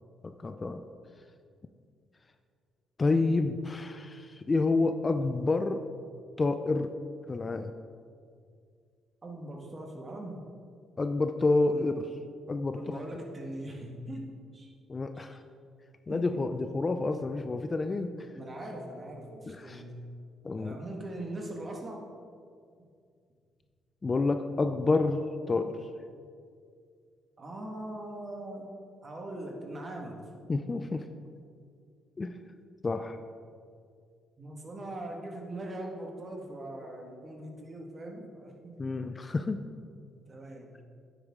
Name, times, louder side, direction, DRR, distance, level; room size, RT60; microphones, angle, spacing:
voice 1, 0.2-0.8 3.0-5.8 6.4-6.9 7.3-7.7 11.0-11.9 12.5-13.0 14.9-15.4 16.1-18.1 19.5-19.8 20.4-20.8 24.0-25.8 30.5-31.0 32.2-32.4 32.8-33.2 38.8-39.6, left 3 dB, 30° left, 8 dB, 0.4 m, -29 dB
voice 2, 9.2-10.4 11.7-11.9 12.7-14.3 14.5-14.7 15.2-15.3 16.1-16.4 18.3-20.1 20.6-22.1 27.4-28.7 29.0-30.2 34.4-38.8 40.3-40.8, right 1 dB, 30° right, 1 dB, 1.7 m, -41 dB
9.7 x 8.2 x 3.7 m, 2.2 s
cardioid pair, 90°, 0 cm